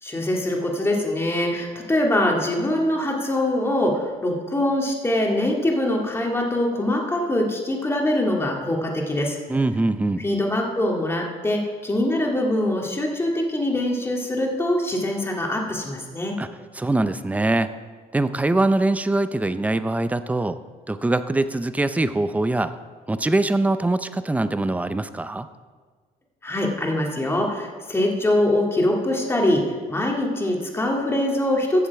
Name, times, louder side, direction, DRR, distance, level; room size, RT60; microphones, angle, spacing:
voice 1, 0.0-9.4 10.2-16.3 26.4-31.9, left 1 dB, 15° left, 0 dB, 2.2 m, -23 dB
voice 2, 9.5-10.2 16.4-16.5 16.8-17.7 18.1-20.6 20.9-22.7 23.1-25.5, right 2 dB, 10° right, 11 dB, 0.5 m, -23 dB
14.5 x 7.2 x 4.7 m, 1.5 s
cardioid pair, 110°, 17 cm